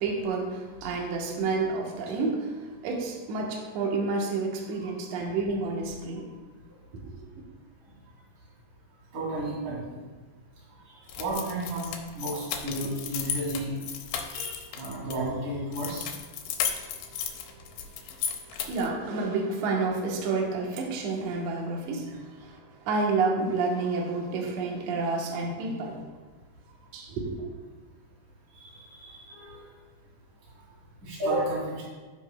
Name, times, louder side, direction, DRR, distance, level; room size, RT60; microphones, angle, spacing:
voice 1, 0.0-6.3 6.9-7.0 18.7-26.0 26.9-27.4, right 3 dB, 70° right, 0 dB, 1.6 m, -29 dB
voice 2, 9.1-9.8 11.2-13.7 14.3-16.0 22.1-22.2 28.5-29.6 31.0-31.8, right 1 dB, 50° right, -6 dB, 3.9 m, -32 dB
sound 1, 11.1-15.2 15.7-18.9, left 8 dB, 90° left, 2.8 m, -34 dB
15.5 x 5.4 x 2.2 m, 1.4 s
omnidirectional pair, 4.7 m